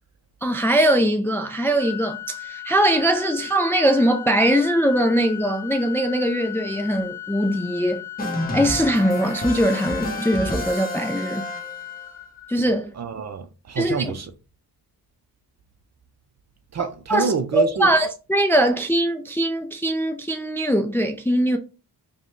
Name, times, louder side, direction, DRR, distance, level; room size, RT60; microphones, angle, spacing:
voice 1, 0.4-8.0 8.5-11.4 12.5-12.9 13.8-14.1 17.1-21.6, right 1 dB, 5° left, 0.3 m, -21 dB
Organ, 1.8-12.8, left 13 dB, 45° left, 0.7 m, -37 dB
sound 1, 8.2-12.1, left 1 dB, 25° left, 1.0 m, -30 dB
voice 2, 13.0-14.3 16.7-17.9, right 5 dB, 45° right, 0.6 m, -27 dB
5.1 x 2.3 x 3.1 m
wide cardioid pair, 150°, 38 cm